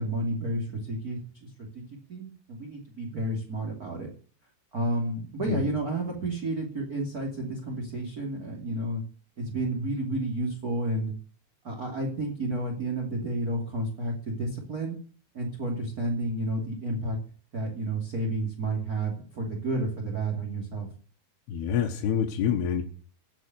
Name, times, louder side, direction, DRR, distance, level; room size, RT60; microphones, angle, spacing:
voice 1, 0.0-1.5 1.7-1.8 2.1-4.1 4.7-9.0 9.4-11.1 11.6-15.0 15.3-17.2 17.5-20.9, right 1 dB, 25° right, -1 dB, 2.3 m, -31 dB
voice 2, 21.5-22.8, left 8 dB, 70° left, 2 dB, 3.1 m, -26 dB
17.0 x 6.3 x 9.4 m, 0.43 s
omnidirectional pair, 5.3 m